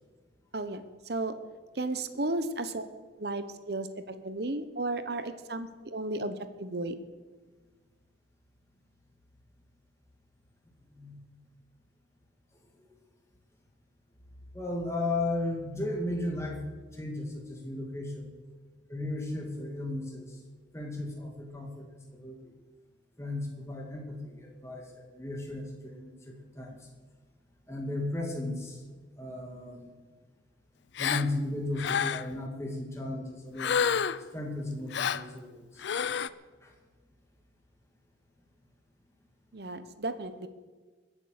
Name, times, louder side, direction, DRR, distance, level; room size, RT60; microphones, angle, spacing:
voice 1, 1.7-2.9 3.2-6.9 39.5-40.5, right 2 dB, 55° right, 11 dB, 1.0 m, -34 dB
voice 2, 14.5-16.6 17.0-18.3 18.9-20.2 20.7-21.9 22.1-22.4 23.2-24.8 25.1-26.8 27.7-28.8 29.2-29.9 31.0-33.9 34.3-35.6 36.6-36.7, left 2 dB, 15° left, 1 dB, 2.2 m, -35 dB
Gasp, 31.0-31.3 31.8-32.4 33.6-34.3 34.9-35.3 35.8-36.3, left 7 dB, 70° left, 0.4 m, -29 dB
22.5 x 8.3 x 6.6 m, 1.4 s
head